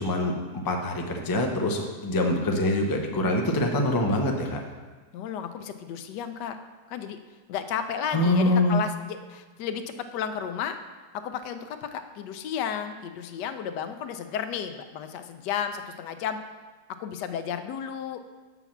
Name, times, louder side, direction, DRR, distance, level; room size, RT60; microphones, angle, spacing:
voice 1, 0.0-4.6 8.1-8.8, left 1 dB, 30° left, 2 dB, 0.4 m, -25 dB
voice 2, 5.1-6.6 6.9-7.2 7.5-10.8 11.1-16.4 17.0-18.2, left 8 dB, 90° left, 9 dB, 1.3 m, -33 dB
6.0 x 5.6 x 7.0 m, 1.3 s
omnidirectional pair, 1.8 m